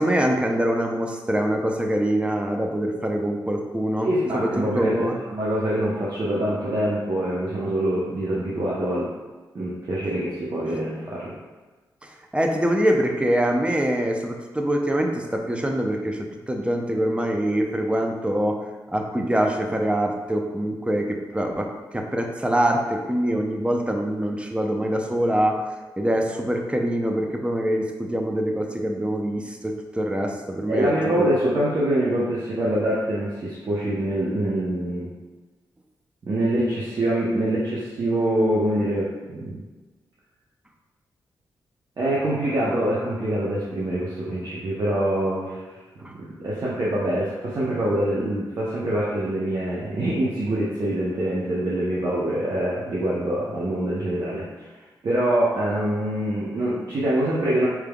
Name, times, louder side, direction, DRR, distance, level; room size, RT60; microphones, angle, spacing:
voice 1, 0.0-4.5 4.7-5.2 12.0-18.6 18.9-25.6 26.0-31.5 46.0-46.1, right 1 dB, 15° right, 2 dB, 0.6 m, -24 dB
voice 2, 4.0-5.0 5.3-9.1 9.5-11.3 30.7-35.2 36.3-39.6 42.0-45.6 46.2-54.7 55.0-57.7, right 1 dB, 55° right, -7 dB, 0.8 m, -25 dB
4.6 x 3.5 x 2.3 m, 1.2 s
cardioid pair, 60°, 8 cm